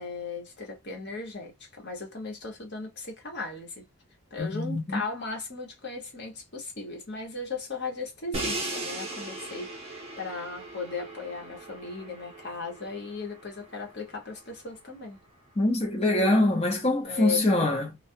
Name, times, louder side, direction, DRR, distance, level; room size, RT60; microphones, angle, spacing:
voice 1, 0.0-3.8 4.3-15.2 17.0-17.4, left 4 dB, 50° left, 1.1 m, -37 dB
voice 2, 4.4-5.0 15.6-18.0, left 1 dB, 25° left, 0.8 m, -24 dB
Crash cymbal, 8.3-14.3, right 2 dB, 25° right, 0.8 m, -38 dB
2.3 x 2.3 x 2.6 m
head